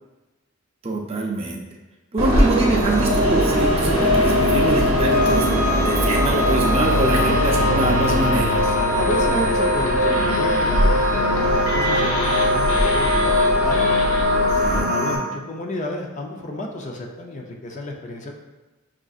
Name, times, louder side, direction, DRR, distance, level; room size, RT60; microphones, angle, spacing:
voice 1, 0.8-1.6 2.1-5.5 5.8-8.7 14.6-14.9, right 1 dB, 30° right, -1 dB, 0.5 m, -24 dB
Train, 2.2-14.8, right 1 dB, 75° right, 0.7 m, -23 dB
sound 1, 2.3-14.2, left 1 dB, 80° left, 0.7 m, -34 dB
sound 2, 2.9-15.2, left 2 dB, 10° left, 0.8 m, -21 dB
voice 2, 8.9-14.0 14.5-18.3, left 1 dB, 35° left, 1 dB, 0.4 m, -31 dB
6.0 x 2.5 x 2.4 m, 1.1 s
head